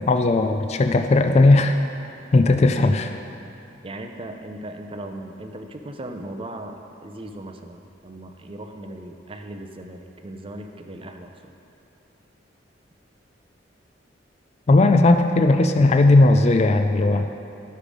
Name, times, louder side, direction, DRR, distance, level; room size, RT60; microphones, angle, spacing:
voice 1, 0.0-1.8 2.3-3.1 14.7-17.3, left 2 dB, 35° left, 6 dB, 0.4 m, -17 dB
voice 2, 3.8-11.3, right 1 dB, 30° right, 5 dB, 0.6 m, -37 dB
12.0 x 6.6 x 5.0 m, 2.7 s
head